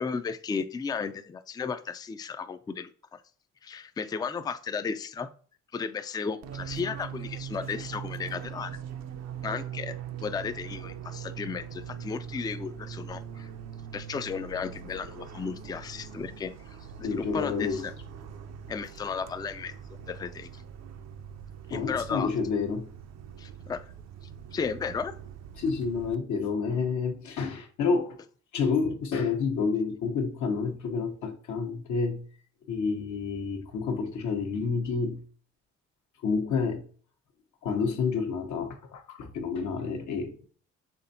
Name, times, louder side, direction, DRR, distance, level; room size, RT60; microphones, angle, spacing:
voice 1, 0.0-3.2 3.6-5.3 5.7-8.7 9.4-13.5 13.9-16.5 17.0-17.9 18.7-20.6 21.7-22.3 23.4-23.9 24.5-25.1, left 5 dB, 15° left, 0.3 m, -34 dB
Fixed-wing aircraft airplane, 6.4-26.1, right 9 dB, 60° right, 0.5 m, -42 dB
voice 2, 17.0-17.8 21.7-22.9 25.6-28.2 28.5-32.2 32.7-35.2 36.2-36.8 37.6-40.4, left 5 dB, 75° left, 1.0 m, -29 dB
5.8 x 3.4 x 2.7 m
cardioid pair, 90°, 30 cm